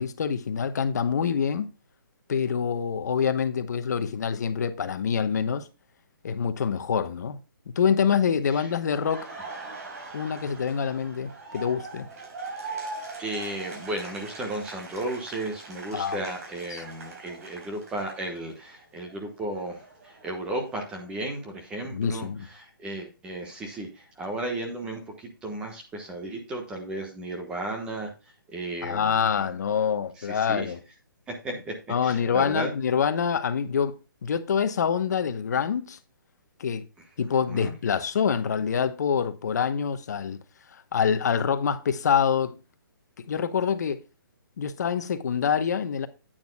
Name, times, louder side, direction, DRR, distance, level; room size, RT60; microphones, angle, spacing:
voice 1, 0.0-1.7 2.3-5.7 6.2-7.4 7.7-9.3 10.1-12.1 15.9-16.2 16.7-16.8 21.9-22.4 28.8-30.8 31.9-33.9 34.2-36.0 36.6-36.8 37.2-40.4 40.9-42.6 43.3-44.0 44.6-46.1, left 7 dB, 50° left, 1.0 m, -26 dB
Laughter, 8.9-18.7 19.1-21.1, right 3 dB, 45° right, 4.3 m, -41 dB
voice 2, 13.2-28.1 28.5-29.5 30.2-30.7 31.3-32.7 37.3-37.7, right 1 dB, 10° right, 1.2 m, -34 dB
10.5 x 9.0 x 2.3 m
hypercardioid pair, 165°, 12 cm